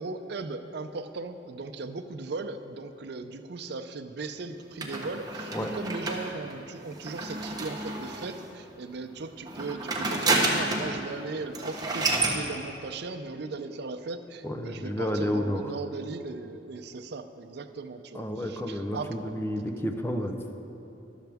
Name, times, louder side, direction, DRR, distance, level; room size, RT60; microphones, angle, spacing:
voice 1, 0.0-19.3, right 3 dB, 65° right, 8 dB, 0.5 m, -38 dB
sound 1, 4.8-8.5 9.4-11.0 11.2-11.3 11.5-12.4, right 2 dB, 20° right, 1.1 m, -29 dB
voice 2, 14.4-15.7 18.1-20.4, equal, 15° left, 5 dB, 0.7 m, -31 dB
13.5 x 11.5 x 3.5 m, 3.0 s
head